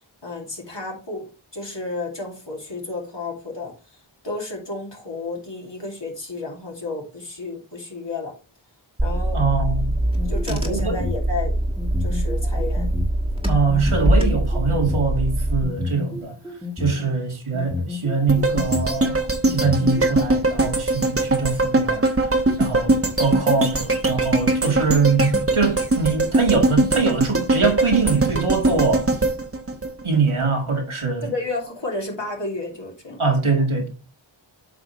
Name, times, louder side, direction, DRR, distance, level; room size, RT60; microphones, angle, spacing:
voice 1, 0.2-3.7 4.2-8.3 9.0-9.4 10.3-11.5 12.0-12.9 16.9-17.1 31.2-33.2, left 3 dB, 60° left, 2.4 m, -32 dB
Car / Engine, 9.0-15.6, right 1 dB, 10° right, 1.5 m, -23 dB
voice 2, 9.3-10.0 10.5-11.1 13.5-16.3 16.8-22.1 22.6-29.0 30.0-31.3 33.2-33.9, right 4 dB, 80° right, 1.9 m, -23 dB
sound 1, 10.1-11.2 11.8-13.1 13.7-15.0 15.6-17.0 17.5-18.9 19.5-20.1, left 4 dB, 5° left, 1.5 m, -30 dB
sound 2, 18.3-30.5 30.9-31.0, right 2 dB, 25° right, 1.1 m, -21 dB
8.2 x 5.3 x 3.1 m
wide cardioid pair, 45°, 49 cm